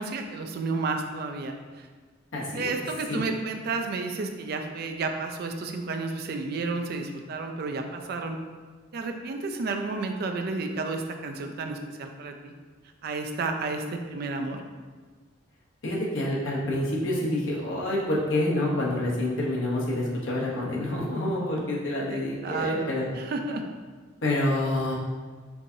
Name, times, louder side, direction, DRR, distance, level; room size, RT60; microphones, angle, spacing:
voice 1, 0.0-1.9 2.5-8.4 8.9-12.5 13.0-14.6 22.1-23.6, right 3 dB, 55° right, 5 dB, 0.3 m, -31 dB
voice 2, 2.3-2.7 3.1-3.2 15.8-23.1 24.2-24.9, left 1 dB, 90° left, -4 dB, 0.9 m, -27 dB
4.5 x 2.6 x 2.7 m, 1.5 s
head